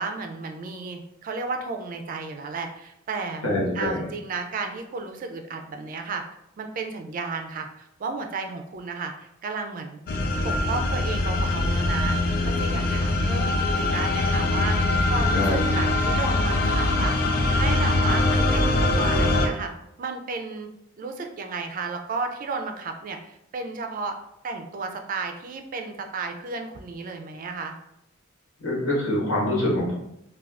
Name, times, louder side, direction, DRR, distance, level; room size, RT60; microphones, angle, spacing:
voice 1, 0.0-6.2 6.6-10.0 10.4-17.1 17.5-19.7 20.0-20.7 21.0-24.2 24.4-27.7, right 4 dB, 40° right, 4 dB, 0.3 m, -33 dB
voice 2, 3.4-4.0 15.3-15.5 28.6-30.0, left 1 dB, 80° left, -4 dB, 1.1 m, -24 dB
sound 1, 10.1-19.5, left 2 dB, 45° left, 0.3 m, -23 dB
2.4 x 2.3 x 3.3 m, 0.79 s
head